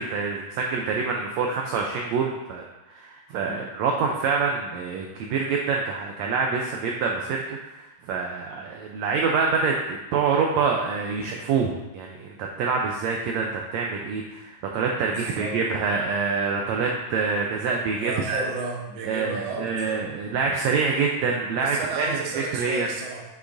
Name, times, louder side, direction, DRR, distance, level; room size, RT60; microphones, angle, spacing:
voice 1, 0.0-18.4 19.0-22.1 22.3-22.9, right 5 dB, 85° right, 0 dB, 1.5 m, -26 dB
voice 2, 15.0-15.6 17.9-20.0 21.6-23.2, right 3 dB, 70° right, -1 dB, 1.1 m, -33 dB
8.4 x 6.1 x 2.6 m, 1.0 s
omnidirectional pair, 3.8 m